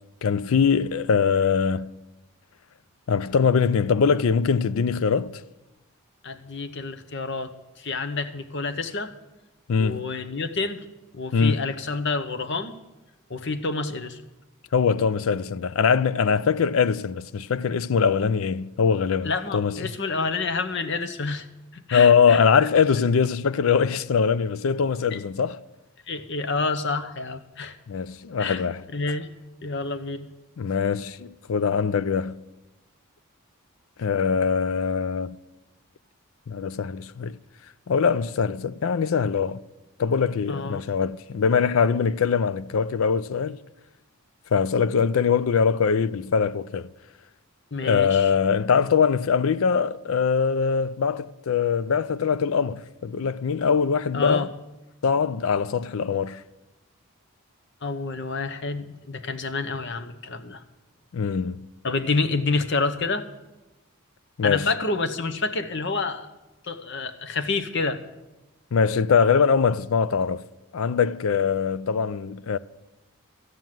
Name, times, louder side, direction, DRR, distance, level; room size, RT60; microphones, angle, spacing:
voice 1, 0.2-1.9 3.1-5.4 9.7-10.1 11.3-11.6 14.7-19.8 21.9-25.6 27.9-28.8 30.6-32.4 34.0-35.4 36.5-37.4 37.9-39.6 40.0-43.6 44.5-46.9 47.8-54.5 55.0-56.4 61.1-61.7 64.4-64.7 68.7-70.4 70.7-72.6, left 6 dB, 70° left, 0.4 m, -22 dB
voice 2, 6.2-9.1 9.8-10.9 11.1-12.7 13.3-14.2 19.2-21.5 21.7-22.7 25.1-25.2 26.1-27.8 28.4-28.6 28.9-29.3 29.6-30.3 40.5-40.8 47.7-48.3 54.1-54.5 57.8-60.6 61.8-63.3 64.4-66.3 66.6-68.0, left 3 dB, 55° left, 0.9 m, -28 dB
13.5 x 9.2 x 7.6 m
head